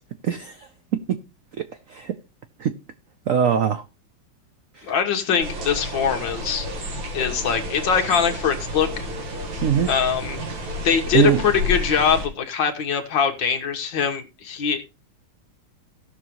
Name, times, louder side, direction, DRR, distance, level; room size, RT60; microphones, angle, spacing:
voice 1, 0.2-0.6 1.1-1.2 1.6-2.1 2.6-2.7 3.3-3.8 4.8-4.9 9.6-9.9 11.1-11.4, right 8 dB, 80° right, 0.7 m, -21 dB
voice 2, 4.8-6.7 7.1-9.1 9.9-10.4 10.8-14.8, left 7 dB, 65° left, 1.9 m, -22 dB
sound 1, 5.4-12.3, left 1 dB, 65° right, 2.3 m, -31 dB
17.5 x 6.2 x 3.0 m
omnidirectional pair, 2.3 m